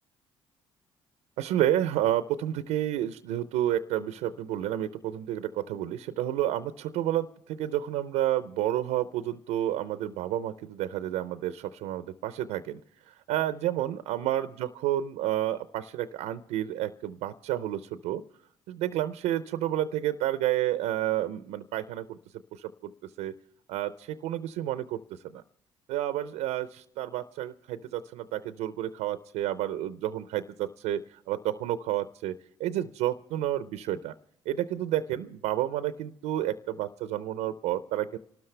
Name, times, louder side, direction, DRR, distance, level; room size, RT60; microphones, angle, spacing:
voice 1, 1.4-12.8 13.1-18.2 18.7-22.2 22.5-22.9 23.2-23.3 23.7-25.4 25.9-34.1 34.5-38.2, right 12 dB, 85° right, 13 dB, 0.6 m, -30 dB
26.5 x 13.0 x 3.3 m, 0.69 s
supercardioid pair, 60°, 11 cm